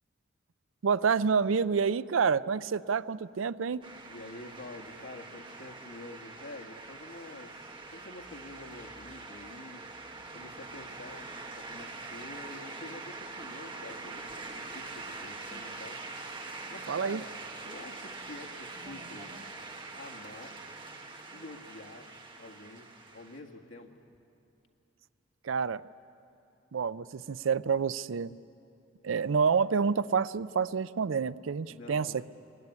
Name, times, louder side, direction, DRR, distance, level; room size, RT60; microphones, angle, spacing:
voice 1, 0.8-3.8 16.9-17.2 25.4-25.8 26.7-28.3 29.0-32.2, right 6 dB, 85° right, 17 dB, 0.5 m, -28 dB
sound 1, 3.8-23.4, right 3 dB, 25° right, 1.6 m, -44 dB
voice 2, 4.1-9.8 10.3-17.3 17.6-19.4 19.9-20.6 21.3-22.1 22.4-23.9 31.7-32.2, left 2 dB, 85° left, 1 dB, 1.9 m, -48 dB
21.5 x 20.0 x 9.7 m, 2.6 s
head